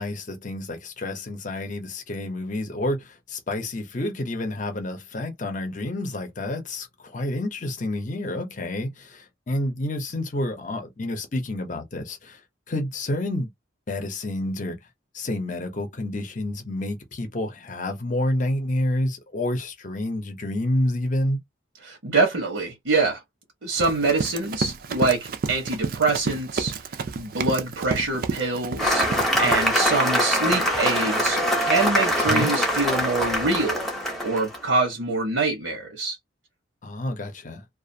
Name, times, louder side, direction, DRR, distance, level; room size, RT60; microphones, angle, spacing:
voice 1, 0.0-12.4 12.7-13.5 13.9-14.8 15.1-21.4 32.3-32.5 36.8-37.6, left 1 dB, 40° left, 0.7 m, -29 dB
voice 2, 21.8-23.2 23.6-26.7 27.2-29.1 29.4-33.9 34.2-36.2, right 3 dB, 90° right, 0.9 m, -25 dB
Run, 23.8-29.6, right 4 dB, 45° right, 0.4 m, -30 dB
Cheering / Applause, 28.8-34.6, equal, ahead, 0.7 m, -23 dB
2.4 x 2.4 x 2.6 m
head